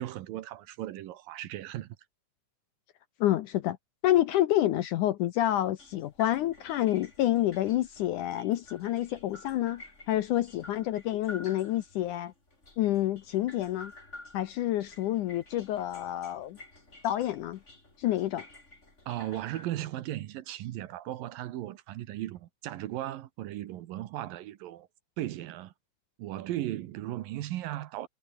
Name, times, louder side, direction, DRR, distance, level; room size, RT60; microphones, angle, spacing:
voice 1, 0.0-2.0 19.1-24.9 25.2-25.7 26.2-28.1, right 14 dB, 70° right, 2.6 m, -36 dB
voice 2, 3.2-3.8 4.0-12.3 12.8-13.9 14.3-16.6 17.0-17.6 18.0-18.4, left 13 dB, 70° left, 2.0 m, -28 dB
sound 1, 5.8-19.7, left 2 dB, 15° left, 5.6 m, -52 dB
omnidirectional pair, 4.4 m